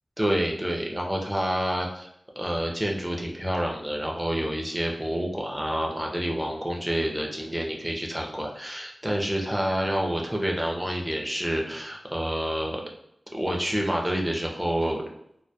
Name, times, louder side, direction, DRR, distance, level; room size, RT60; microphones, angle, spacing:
voice 1, 0.2-2.1 2.4-12.8 13.3-15.0, equal, 10° right, 0 dB, 0.5 m, -28 dB
2.2 x 2.2 x 2.6 m, 0.74 s
wide cardioid pair, 70°, 0 cm